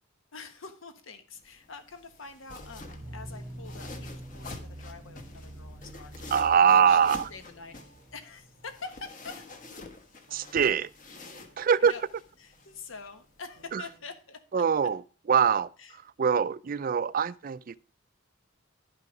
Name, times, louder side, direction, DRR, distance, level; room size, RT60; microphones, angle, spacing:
voice 1, 0.3-6.1 6.9-7.8 8.1-9.5 11.8-12.0 12.4-14.6 15.8-16.0, left 4 dB, 80° left, 1.3 m, -45 dB
sound 1, 1.4-14.0, left 3 dB, 40° left, 1.3 m, -48 dB
sound 2, 2.6-14.1, right 1 dB, 65° right, 0.7 m, -50 dB
sound 3, 3.0-9.9, equal, 15° left, 1.7 m, -49 dB
voice 2, 6.3-7.3 10.3-10.9 11.6-11.9 13.7-13.8 14.5-15.0 15.3-15.7 16.2-17.8, right 7 dB, 45° right, 0.4 m, -23 dB
11.0 x 5.5 x 5.2 m
head